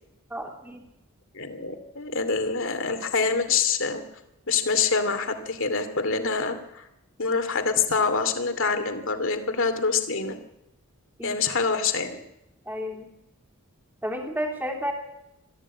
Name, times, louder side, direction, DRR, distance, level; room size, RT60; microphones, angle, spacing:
voice 1, 0.3-0.8 11.2-11.4 12.7-13.1 14.0-14.9, equal, 10° right, 2 dB, 2.9 m, -31 dB
voice 2, 1.3-4.0 4.5-6.8 7.2-10.4 11.2-12.2, left 5 dB, 65° left, 8 dB, 2.6 m, -26 dB
22.5 x 14.5 x 8.7 m, 0.89 s
head